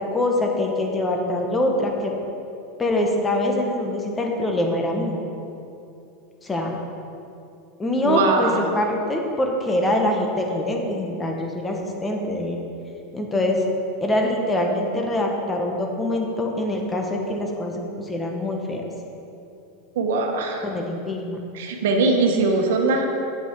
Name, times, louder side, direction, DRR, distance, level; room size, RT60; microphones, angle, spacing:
voice 1, 0.0-2.2 2.8-5.2 6.4-6.7 7.8-12.6 13.1-13.6 14.0-18.8 20.6-21.4, left 1 dB, 15° left, 1 dB, 1.2 m, -24 dB
voice 2, 8.0-8.6 19.9-20.7 21.5-23.3, right 3 dB, 85° right, 3 dB, 1.2 m, -21 dB
8.1 x 8.0 x 4.6 m, 2.7 s
supercardioid pair, 135°, 0 cm